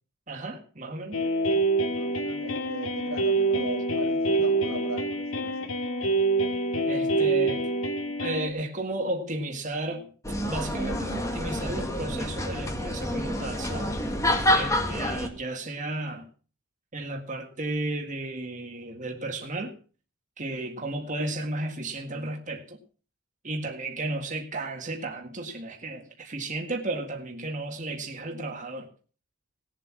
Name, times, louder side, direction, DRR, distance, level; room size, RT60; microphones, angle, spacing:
voice 1, 0.3-1.2 6.9-7.7 8.2-10.1 10.5-14.0 14.5-16.3 16.9-19.8 20.4-22.8 23.4-28.9, right 2 dB, 35° right, 1.9 m, -33 dB
sound 1, 1.1-8.5, right 2 dB, 75° left, 2.3 m, -26 dB
voice 2, 1.9-5.7, right 2 dB, 75° right, 2.7 m, -38 dB
sound 2, 10.2-15.3, left 1 dB, 15° left, 2.0 m, -28 dB
19.0 x 7.5 x 6.1 m
head